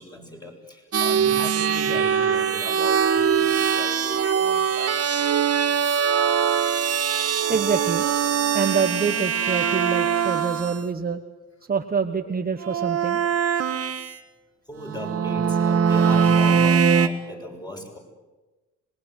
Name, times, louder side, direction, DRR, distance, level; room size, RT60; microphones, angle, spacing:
voice 1, 0.0-6.7 7.4-7.5 13.7-13.8 14.7-18.0, equal, 15° left, 1 dB, 7.5 m, -39 dB
sound 1, 0.9-10.8 12.6-14.1 14.8-17.1, right 7 dB, 50° right, 1.8 m, -22 dB
voice 2, 7.5-11.2 11.7-13.2, right 5 dB, 30° right, 6 dB, 1.3 m, -26 dB
26.0 x 21.0 x 8.2 m, 1.2 s
cardioid pair, 90°, 30 cm